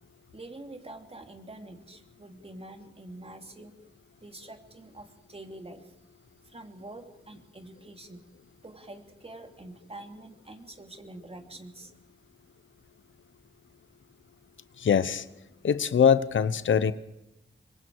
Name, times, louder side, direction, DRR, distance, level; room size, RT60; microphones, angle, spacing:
voice 1, 0.3-3.8 4.2-5.9 6.4-8.2 8.6-11.9, right 2 dB, 30° right, 3.0 m, -46 dB
voice 2, 14.8-15.2 15.6-16.9, left 7 dB, 90° left, 1.0 m, -22 dB
25.5 x 22.0 x 4.7 m
wide cardioid pair, 75°, 19 cm